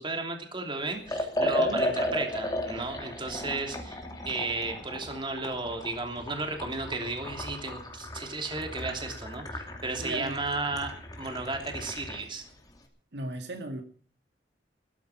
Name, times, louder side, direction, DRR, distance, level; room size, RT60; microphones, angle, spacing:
voice 1, 0.0-12.4, right 3 dB, 30° right, 4 dB, 3.0 m, -34 dB
Liquid, 1.0-12.3, left 1 dB, 20° left, 2.6 m, -35 dB
voice 2, 1.4-1.8 10.0-10.3 13.1-13.8, right 1 dB, 75° right, 5 dB, 2.1 m, -36 dB
14.5 x 13.5 x 6.0 m, 0.44 s
head